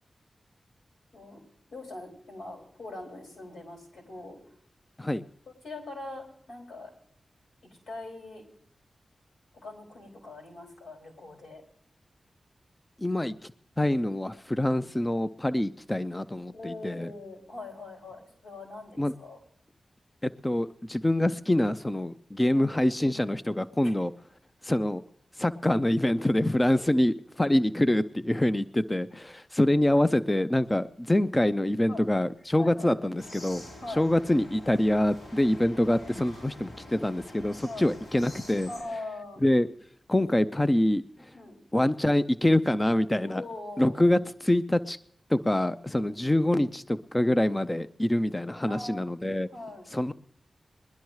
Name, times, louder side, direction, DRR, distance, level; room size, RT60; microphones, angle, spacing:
voice 1, 1.7-4.4 5.4-6.9 7.9-8.4 9.6-11.6 16.5-19.4 22.4-22.7 23.8-23.9 31.9-32.1 32.6-33.0 33.8-34.1 35.4-35.6 36.9-37.0 37.6-37.9 38.6-39.4 41.3-41.6 43.2-44.0 45.9-46.1 48.7-49.0 49.5-49.9, left 2 dB, 85° left, -1 dB, 4.9 m, -42 dB
voice 2, 13.0-13.5 13.8-17.1 19.0-19.1 20.2-24.1 24.6-25.0 25.4-38.7 39.4-39.7 40.1-41.3 41.7-43.4 43.8-45.0 45.3-49.5 49.9-50.1, left 1 dB, 20° left, 13 dB, 0.5 m, -25 dB
sound 1, 33.2-38.8, left 1 dB, 70° left, 5.3 m, -46 dB
21.0 x 12.0 x 3.2 m, 0.64 s
cardioid pair, 60°, 0 cm